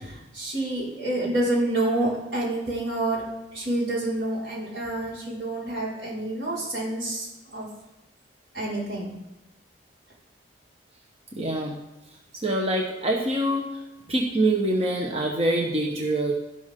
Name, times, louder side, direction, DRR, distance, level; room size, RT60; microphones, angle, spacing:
voice 1, 0.0-3.2 3.5-7.7 8.5-9.1, right 1 dB, 80° right, -6 dB, 5.2 m, -28 dB
voice 2, 11.3-11.8 12.4-13.7 14.1-16.3, right 1 dB, 35° right, 0 dB, 1.3 m, -25 dB
12.5 x 11.5 x 3.8 m, 1.0 s
head